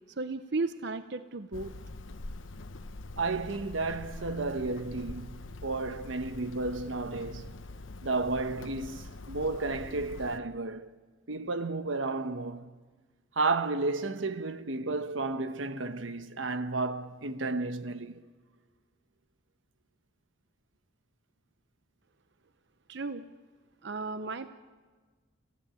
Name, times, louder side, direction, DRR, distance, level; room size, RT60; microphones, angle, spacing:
voice 1, 0.2-1.7 22.9-23.2 23.8-24.5, right 3 dB, 60° right, 0.8 m, -34 dB
Hammer, 1.5-10.4, left 2 dB, 90° left, 1.0 m, -44 dB
voice 2, 3.2-7.6 8.0-10.9 11.3-12.7 13.4-18.2, right 3 dB, 90° right, 1.2 m, -32 dB
29.5 x 16.0 x 9.0 m
head